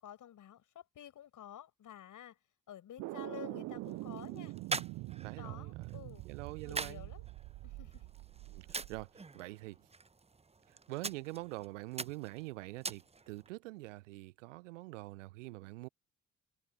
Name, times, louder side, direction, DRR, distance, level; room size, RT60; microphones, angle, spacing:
voice 1, 0.0-2.4 2.7-4.6 5.4-6.3 6.6-7.2 7.6-8.1, left 11 dB, 55° left, 7.2 m, -51 dB
sound 1, 3.0-9.1, right 21 dB, 55° right, 0.5 m, -44 dB
sound 2, 3.5-13.5, right 4 dB, 15° right, 1.1 m, -45 dB
voice 2, 5.2-7.1 8.5-9.9 10.7-15.9, right 21 dB, 75° right, 0.9 m, -45 dB
figure-of-eight pair, 50°, 37 cm